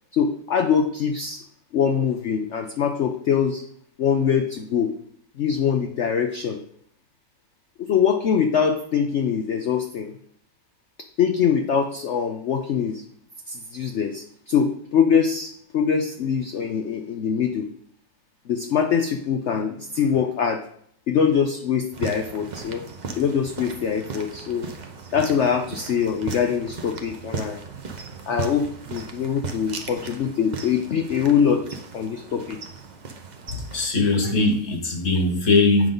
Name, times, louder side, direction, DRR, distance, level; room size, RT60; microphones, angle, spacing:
voice 1, 0.1-1.4 1.7-3.6 4.0-4.9 5.4-6.6 7.8-10.1 11.2-13.0 13.5-17.7 18.5-20.6 21.1-22.8 23.2-24.7 25.1-27.6 28.3-31.7 31.9-32.6, left 7 dB, 85° left, 6 dB, 0.6 m, -23 dB
sound 1, 21.9-33.9, right 5 dB, 60° right, 0.4 m, -37 dB
voice 2, 33.5-35.9, left 3 dB, 45° left, 3 dB, 1.6 m, -20 dB
8.9 x 5.2 x 3.8 m, 0.65 s
omnidirectional pair, 1.9 m